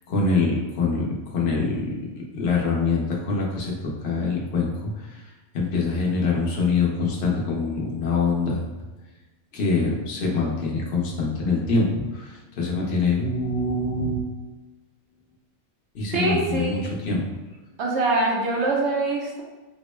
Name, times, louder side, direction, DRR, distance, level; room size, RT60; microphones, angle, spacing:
voice 1, 0.1-1.0 1.3-1.9 2.3-4.7 5.0-5.2 5.5-8.6 9.5-14.3 15.9-17.2, left 3 dB, 55° left, -3 dB, 0.8 m, -24 dB
voice 2, 16.1-16.8 17.8-19.4, right 2 dB, 65° right, -1 dB, 0.7 m, -23 dB
3.6 x 2.0 x 3.1 m, 1.2 s
omnidirectional pair, 1.5 m